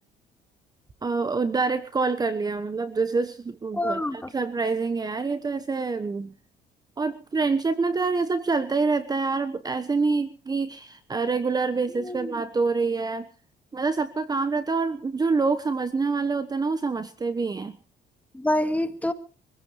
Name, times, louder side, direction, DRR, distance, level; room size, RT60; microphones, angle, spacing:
voice 1, 1.0-6.3 7.0-13.3 13.7-17.8, right 4 dB, 25° right, 12 dB, 1.2 m, -26 dB
voice 2, 3.7-4.3 11.9-12.4 18.3-19.1, left 1 dB, 10° left, 8 dB, 2.0 m, -27 dB
25.0 x 16.0 x 3.3 m, 0.37 s
cardioid pair, 110°, 17 cm